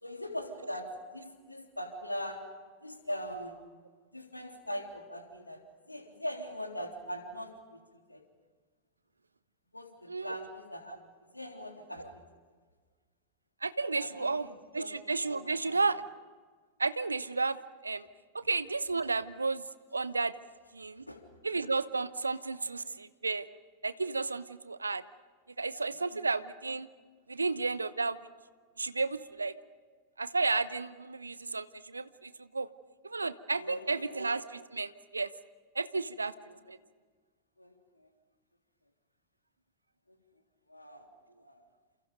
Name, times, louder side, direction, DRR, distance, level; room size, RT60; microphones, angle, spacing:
voice 1, 0.0-2.4 2.8-3.7 4.1-5.6 5.9-7.8 8.1-8.2 9.7-12.2 13.9-15.9 18.4-18.5 20.9-21.3 22.2-22.6 25.8-26.2 33.5-34.2 36.5-36.6 37.6-38.1 40.1-40.2 40.7-41.1 41.4-41.6, equal, 85° left, 3 dB, 3.3 m, -42 dB
voice 2, 10.1-10.5 13.6-14.5 14.7-16.0 16.8-17.6 17.8-18.1 18.3-19.6 19.9-20.3 20.7-21.0 21.4-23.5 23.8-25.0 25.6-26.9 27.3-28.2 28.8-29.5 30.2-32.7 33.0-35.3 35.7-36.3 36.7-36.8, right 3 dB, 80° right, 15 dB, 0.9 m, -32 dB
29.0 x 28.5 x 5.3 m, 1.5 s
figure-of-eight pair, 90°, 0 cm